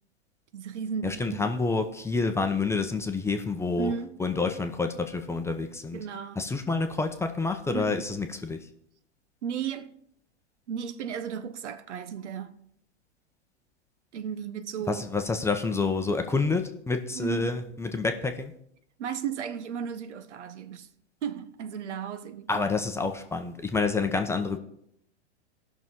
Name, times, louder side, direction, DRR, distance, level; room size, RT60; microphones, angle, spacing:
voice 1, 0.5-1.5 3.8-4.2 5.9-6.4 7.7-8.2 9.4-9.9 10.7-12.6 14.1-15.0 17.1-17.5 19.0-20.9 21.2-22.7 23.0-23.1 23.8-23.9, right 7 dB, 80° right, 0.9 m, -35 dB
voice 2, 1.0-3.9 4.2-6.0 6.4-8.6 14.9-18.5 22.5-24.6, left 4 dB, 10° left, 0.7 m, -28 dB
17.5 x 6.1 x 3.7 m
hypercardioid pair, 115°, 35 cm